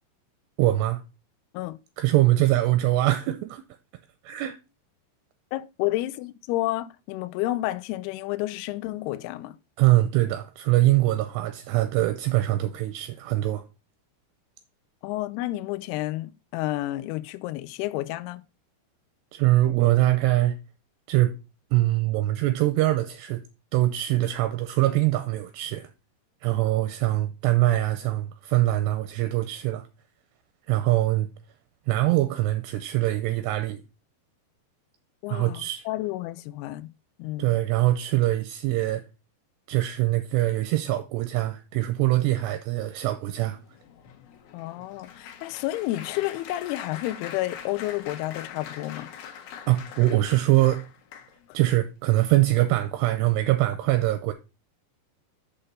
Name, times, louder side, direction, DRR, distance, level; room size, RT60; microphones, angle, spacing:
voice 1, 0.6-1.0 2.0-3.6 4.2-4.6 9.8-13.6 19.3-20.6 21.1-21.3 21.7-23.4 23.7-25.9 26.4-29.9 30.7-31.3 31.9-33.8 35.3-35.8 37.4-39.0 39.7-43.6 49.7-50.9 51.5-54.3, right 16 dB, 80° right, 2.6 m, -23 dB
voice 2, 5.5-9.6 15.0-18.4 35.2-36.9 37.2-37.5 44.5-49.1, left 17 dB, 90° left, 2.3 m, -30 dB
Applause, 43.3-51.6 52.3-52.5 52.8-53.0, left 8 dB, 70° left, 2.5 m, -44 dB
6.7 x 5.7 x 5.3 m
omnidirectional pair, 5.2 m